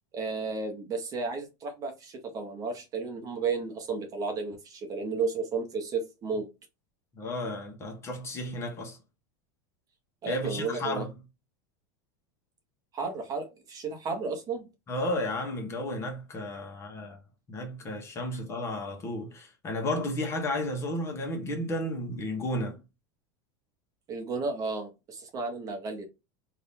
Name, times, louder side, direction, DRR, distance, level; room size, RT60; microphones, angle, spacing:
voice 1, 0.1-6.5 10.2-11.1 12.9-14.7 24.1-26.1, right 4 dB, 30° right, 0.9 m, -33 dB
voice 2, 7.1-9.0 10.3-11.1 14.9-17.2 17.5-22.8, left 1 dB, 25° left, 1.0 m, -33 dB
2.8 x 2.5 x 3.5 m
supercardioid pair, 130°, 11 cm